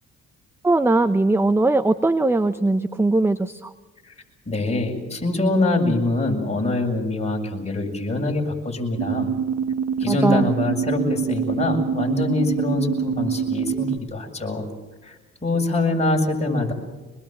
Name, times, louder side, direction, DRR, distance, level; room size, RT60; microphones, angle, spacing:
voice 1, 0.6-3.7 10.1-10.5, right 2 dB, 10° right, 11 dB, 0.8 m, -20 dB
voice 2, 4.5-9.3 10.0-14.7 15.0-16.7, left 2 dB, 20° left, 1 dB, 7.3 m, -24 dB
sound 1, 9.0-14.0, right 7 dB, 75° right, 1.1 m, -25 dB
25.5 x 21.0 x 7.7 m, 1.2 s
cardioid pair, 90°, 30 cm